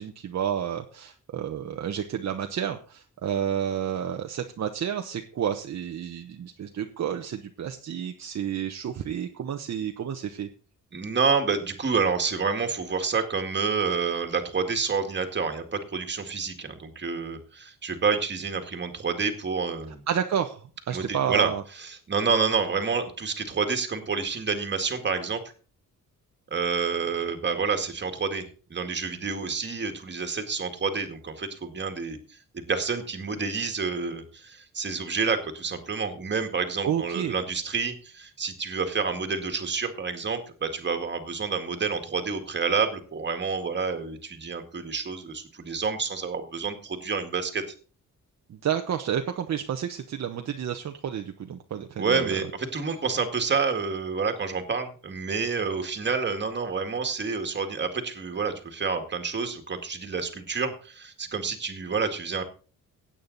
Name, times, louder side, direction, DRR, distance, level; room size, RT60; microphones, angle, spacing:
voice 1, 0.0-10.5 20.1-21.6 36.8-37.3 48.5-52.4, right 9 dB, 55° right, 5 dB, 1.0 m, -30 dB
voice 2, 10.9-20.0 20.9-21.5 21.8-25.4 26.5-28.4 28.7-47.6 52.0-62.4, right 5 dB, 35° right, 6 dB, 2.0 m, -28 dB
16.0 x 9.0 x 4.0 m, 0.38 s
wide cardioid pair, 150°, 33 cm